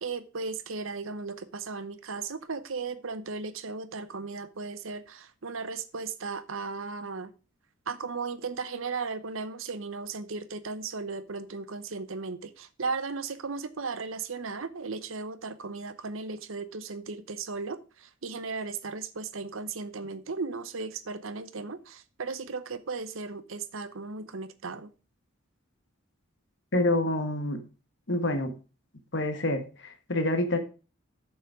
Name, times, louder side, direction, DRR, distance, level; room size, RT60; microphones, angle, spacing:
voice 1, 0.0-7.3 7.9-24.9, right 4 dB, 70° right, 0.8 m, -36 dB
voice 2, 26.7-27.6 28.1-28.5 29.1-30.6, left 1 dB, 55° left, 1.5 m, -27 dB
7.4 x 7.1 x 4.9 m
head